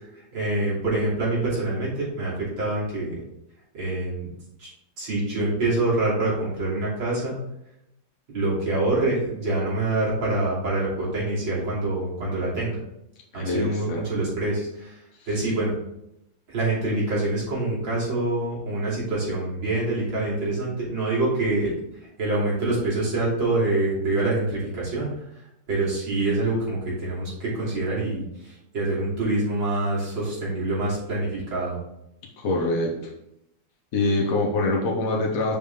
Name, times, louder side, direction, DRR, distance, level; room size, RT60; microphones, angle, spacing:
voice 1, 0.3-3.2 3.7-4.3 4.6-4.7 5.0-7.4 8.3-12.8 13.3-15.0 15.3-15.7 16.5-21.7 22.2-25.1 25.7-31.8, right 2 dB, 80° right, -7 dB, 3.8 m, -25 dB
voice 2, 13.3-14.0 32.4-33.1 33.9-35.6, left 2 dB, 50° left, -1 dB, 1.3 m, -24 dB
7.1 x 5.1 x 3.6 m, 0.82 s
omnidirectional pair, 2.1 m